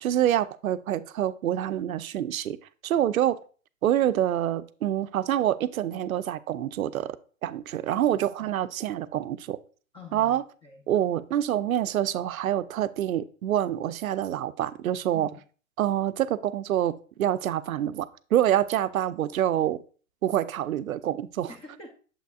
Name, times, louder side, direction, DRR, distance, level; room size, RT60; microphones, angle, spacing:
voice 1, 0.0-2.6 2.8-3.4 3.8-7.2 7.4-9.6 10.1-10.4 10.9-15.3 15.8-19.8 20.2-21.5, right 11 dB, 80° right, 0.5 m, -26 dB
voice 2, 9.9-10.8 15.1-15.4 21.5-21.9, left 3 dB, 15° left, 0.6 m, -46 dB
7.0 x 5.7 x 2.4 m
hypercardioid pair, 115°, 41 cm